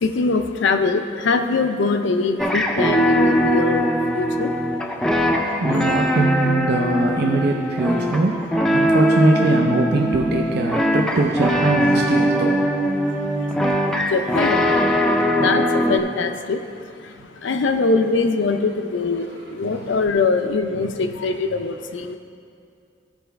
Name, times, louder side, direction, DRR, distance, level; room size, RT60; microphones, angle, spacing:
voice 1, 0.0-4.5 14.1-14.7 15.4-16.6 17.4-22.2, left 3 dB, 70° left, 7 dB, 0.5 m, -22 dB
sound 1, 2.4-16.0, equal, 5° left, 0.4 m, -21 dB
voice 2, 5.6-8.4 8.7-12.6 15.4-15.6, right 2 dB, 60° right, 1 dB, 0.5 m, -21 dB
13.0 x 4.7 x 3.4 m, 2.4 s
head